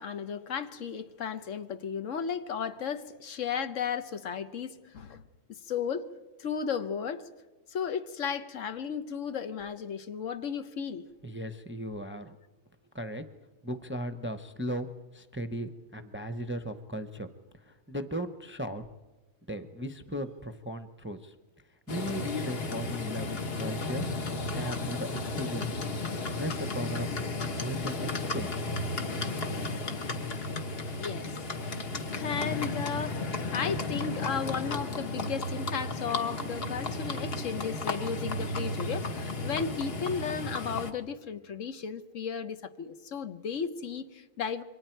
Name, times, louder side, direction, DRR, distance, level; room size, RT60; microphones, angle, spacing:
voice 1, 0.0-5.2 5.5-6.1 6.4-7.3 7.7-11.1 30.9-31.3 32.1-44.6, left 6 dB, 70° left, 1.2 m, -34 dB
voice 2, 11.2-12.4 12.9-13.2 13.6-17.3 17.5-18.8 19.5-21.3 21.9-24.1 24.5-25.8 26.4-27.1 27.6-28.7, equal, 10° right, 0.6 m, -37 dB
Livestock farm animals working animals, 21.9-40.9, left 2 dB, 50° left, 1.4 m, -34 dB
27.5 x 23.5 x 4.5 m
omnidirectional pair, 1.4 m